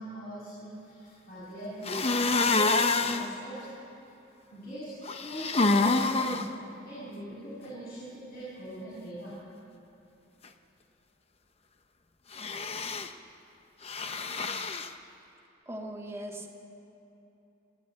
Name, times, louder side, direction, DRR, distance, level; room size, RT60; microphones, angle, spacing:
voice 1, 0.0-2.7 3.1-3.6 4.5-6.5 6.8-9.4, right 1 dB, 50° left, -9 dB, 7.3 m, -41 dB
sound 1, 1.8-3.3 5.1-6.5 12.3-13.1 13.8-14.9, left 3 dB, 30° left, 0.8 m, -27 dB
voice 2, 15.7-16.5, right 1 dB, 15° right, 1 dB, 2.0 m, -39 dB
28.5 x 13.0 x 9.0 m, 3.0 s
head